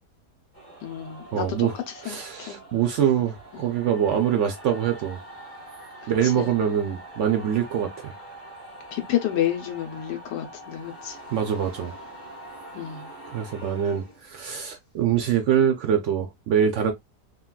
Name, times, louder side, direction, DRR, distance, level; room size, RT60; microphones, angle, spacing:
sound 1, 0.5-14.7, right 1 dB, 10° left, 0.7 m, -44 dB
voice 1, 0.8-2.6 3.5-3.7 6.0-6.5 8.9-11.2 12.7-13.1, left 11 dB, 80° left, 1.3 m, -30 dB
voice 2, 1.3-1.7 2.0-5.2 6.1-8.1 11.3-12.0 13.3-16.9, right 9 dB, 80° right, 0.6 m, -24 dB
3.7 x 2.2 x 2.2 m
omnidirectional pair, 1.8 m